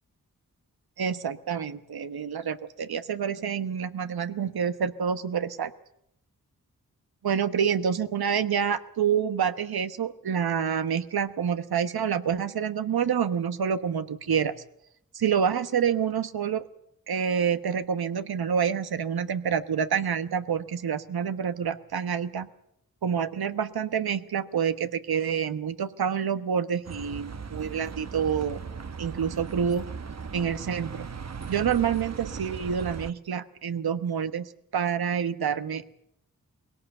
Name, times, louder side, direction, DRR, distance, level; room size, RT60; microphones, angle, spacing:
voice 1, 1.0-5.7 7.2-14.5 15.1-16.6 17.1-22.5 23.0-28.6 29.0-29.9 30.3-31.1 31.5-35.9, right 7 dB, 85° right, 11 dB, 1.1 m, -27 dB
Bus, 26.8-33.1, right 5 dB, 45° right, 1.0 m, -38 dB
21.5 x 17.5 x 8.0 m, 0.75 s
cardioid pair, 50°, 36 cm